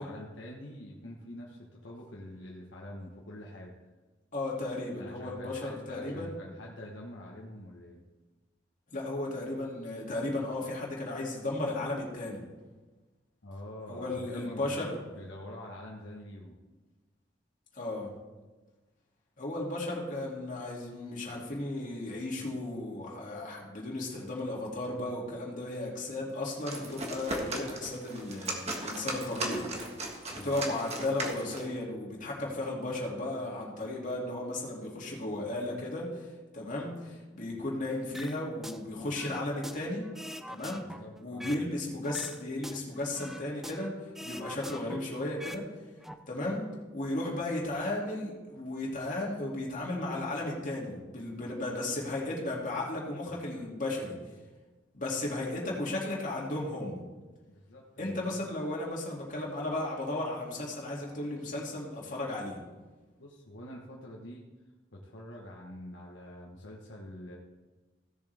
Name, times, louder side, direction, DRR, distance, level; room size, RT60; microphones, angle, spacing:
voice 1, 0.0-3.7 5.0-8.0 13.4-16.6 30.3-30.6 40.8-41.7 57.5-58.1 63.2-64.4 64.9-67.4, left 1 dB, 70° left, -2 dB, 1.2 m, -46 dB
voice 2, 4.3-6.3 8.9-12.4 13.9-15.0 17.7-18.1 19.4-29.7 30.3-36.3 36.5-40.0 40.5-40.9 41.2-45.7 46.3-46.7 46.9-54.2 54.9-57.0 58.0-62.6, left 2 dB, 45° left, -4 dB, 2.5 m, -35 dB
sound 1, 26.4-31.7, right 2 dB, 35° right, 1.5 m, -37 dB
sound 2, 38.1-38.8 39.1-41.7 42.0-43.9 44.1-45.6 45.9-46.1, equal, ahead, 0.5 m, -43 dB
16.5 x 7.1 x 3.5 m, 1.2 s
head